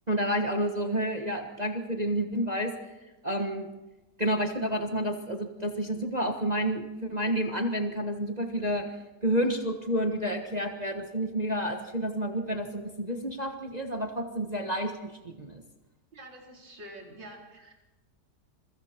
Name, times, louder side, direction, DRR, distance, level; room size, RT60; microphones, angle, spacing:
voice 1, 0.1-2.7 3.2-3.7 4.2-8.9 9.2-15.6, equal, 25° right, 3 dB, 1.4 m, -30 dB
voice 2, 16.1-17.7, right 1 dB, 90° right, -1 dB, 4.9 m, -47 dB
27.5 x 22.5 x 4.5 m, 1.1 s
omnidirectional pair, 1.9 m